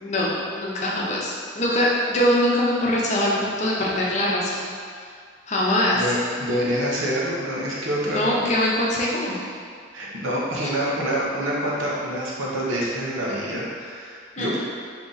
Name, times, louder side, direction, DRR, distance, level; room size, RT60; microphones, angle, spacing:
voice 1, 0.0-4.6 5.5-6.0 8.1-9.4 14.4-14.6, left 1 dB, 35° left, -4 dB, 0.6 m, -23 dB
voice 2, 5.9-8.4 9.2-9.3 9.9-14.6, equal, 85° right, -5 dB, 0.9 m, -26 dB
3.7 x 2.9 x 3.9 m, 2.1 s
head